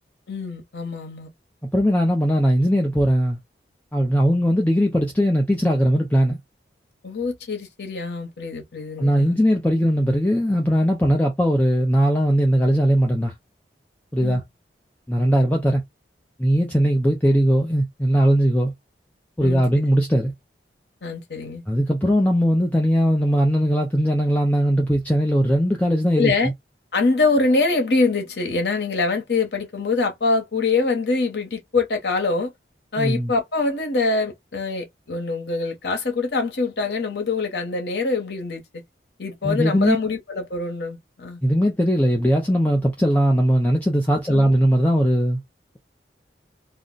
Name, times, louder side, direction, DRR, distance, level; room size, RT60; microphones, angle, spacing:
voice 1, 0.3-1.3 7.0-9.4 14.2-14.4 19.4-19.6 21.0-21.6 26.2-26.5 26.9-32.5 32.9-38.8 39.2-41.4 44.3-44.5, left 3 dB, 70° left, 0.9 m, -24 dB
voice 2, 1.7-3.4 3.9-6.4 9.0-13.3 14.1-14.4 15.1-15.8 16.4-18.7 19.4-20.3 21.7-26.3 33.0-33.3 39.4-40.0 41.4-45.4, equal, 10° left, 0.4 m, -19 dB
2.5 x 2.1 x 3.7 m
head